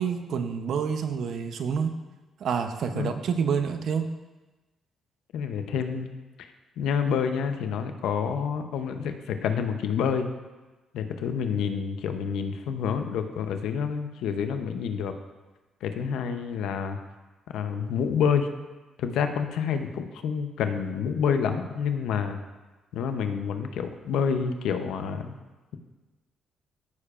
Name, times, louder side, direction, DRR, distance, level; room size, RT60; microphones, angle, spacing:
voice 1, 0.0-1.9 2.4-4.1, right 6 dB, 65° right, 8 dB, 0.7 m, -28 dB
voice 2, 5.3-6.1 6.4-10.3 10.9-15.1 15.8-17.0 17.5-18.5 19.0-22.4 22.9-25.4, left 7 dB, 85° left, 7 dB, 0.7 m, -28 dB
14.0 x 6.7 x 2.5 m, 1.2 s
cardioid pair, 90°, 0 cm